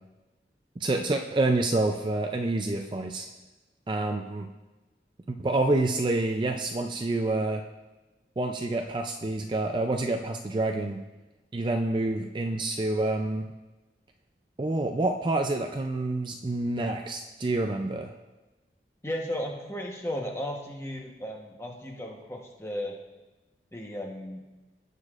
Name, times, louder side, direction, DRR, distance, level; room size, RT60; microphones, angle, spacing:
voice 1, 0.8-3.3 3.9-4.5 5.3-7.6 8.4-11.0 11.5-13.5 14.6-18.1, right 2 dB, 25° right, 4 dB, 0.4 m, -28 dB
voice 2, 19.0-22.9 23.7-24.4, left 1 dB, 15° left, 0 dB, 1.0 m, -35 dB
17.0 x 6.7 x 2.5 m, 1.1 s
head